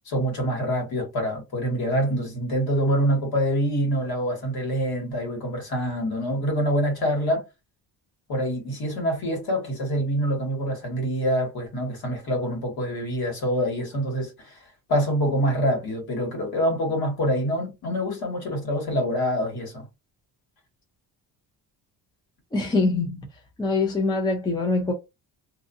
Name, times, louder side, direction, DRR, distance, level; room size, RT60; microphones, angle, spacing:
voice 1, 0.1-7.4 8.3-14.6 14.9-19.8, equal, 55° left, 1.7 m, -25 dB
voice 2, 22.5-23.3 23.6-24.9, left 3 dB, 10° left, 0.6 m, -24 dB
2.7 x 2.5 x 2.6 m
cardioid pair, 145°, 44 cm